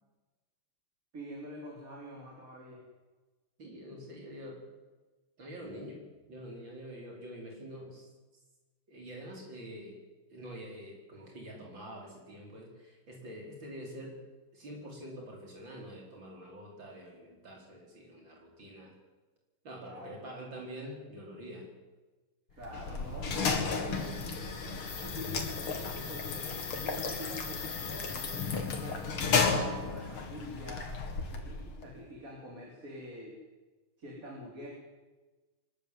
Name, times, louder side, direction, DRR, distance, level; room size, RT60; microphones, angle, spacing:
voice 1, 1.1-2.8 19.8-20.4 22.6-29.1 29.4-33.4 34.0-34.7, equal, 40° right, -2 dB, 4.1 m, -46 dB
voice 2, 3.6-4.7 5.4-6.0 6.3-8.1 8.9-10.0 10.3-14.3 14.5-18.9 19.6-21.7 22.5-22.6, equal, 60° right, 0 dB, 5.5 m, -46 dB
sound 1, 22.6-31.9, left 5 dB, 90° left, 3.0 m, -33 dB
23.0 x 13.5 x 9.6 m, 1.2 s
omnidirectional pair, 2.3 m